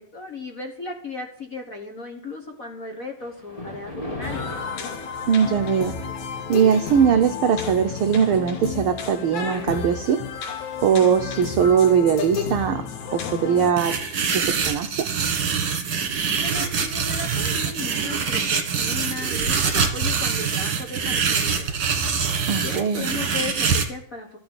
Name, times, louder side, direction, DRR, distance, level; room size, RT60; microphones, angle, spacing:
voice 1, 0.0-4.5 16.3-21.8 22.4-24.4, left 3 dB, 40° left, 2 dB, 1.3 m, -36 dB
Thunder, 3.2-11.7 12.2-12.5 13.2-13.3 13.6-13.7 15.9-16.1 16.4-16.5 16.7-22.7, left 2 dB, 25° left, 0.8 m, -43 dB
sound 1, 4.2-13.7, left 6 dB, 80° left, 2.7 m, -31 dB
voice 2, 5.3-6.0 6.5-10.2 10.8-12.8 13.1-13.9 14.3-15.1 22.5-23.1, right 7 dB, 75° right, 6 dB, 1.2 m, -20 dB
sound 2, 13.8-23.8, right 6 dB, 45° right, 2.0 m, -24 dB
13.5 x 6.2 x 9.0 m, 0.63 s
omnidirectional pair, 3.3 m